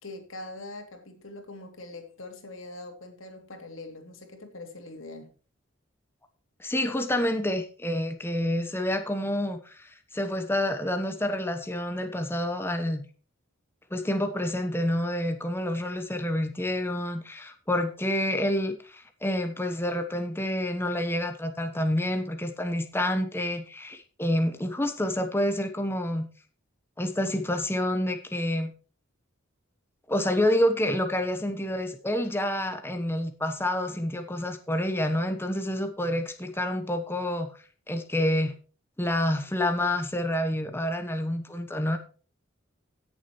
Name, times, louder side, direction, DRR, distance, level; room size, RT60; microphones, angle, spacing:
voice 1, 0.0-5.3, left 2 dB, 85° left, 4 dB, 2.9 m, -42 dB
voice 2, 6.6-13.1 13.9-26.3 27.0-28.7 30.1-37.5 37.9-38.5 39.0-42.0, left 1 dB, 10° left, 7 dB, 1.0 m, -28 dB
16.5 x 7.3 x 3.1 m, 0.38 s
head